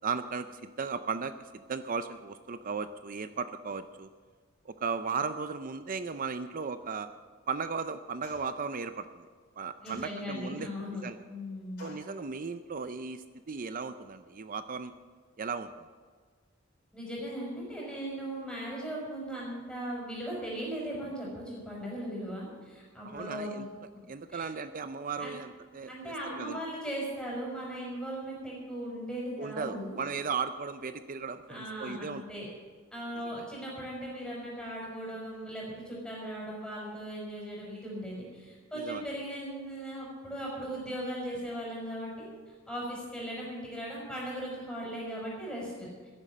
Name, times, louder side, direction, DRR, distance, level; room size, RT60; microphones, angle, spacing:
voice 1, 0.0-1.3 1.7-4.1 4.7-7.1 7.5-9.3 9.6-11.2 11.8-14.9 15.4-15.9 23.0-23.7 24.1-26.6 29.4-32.2 33.2-33.4 38.8-39.0, right 5 dB, 45° right, 11 dB, 0.6 m, -36 dB
sound 1, 8.2-8.7 9.8-10.5 11.8-12.2, left 3 dB, 55° left, 4.2 m, -51 dB
voice 2, 9.8-11.0 11.3-11.9 16.9-23.7 24.3-24.5 25.2-25.4 25.9-30.0 31.5-32.5 32.9-42.3 42.7-45.9, equal, 5° left, -4 dB, 5.3 m, -38 dB
14.5 x 11.0 x 7.4 m, 1.5 s
head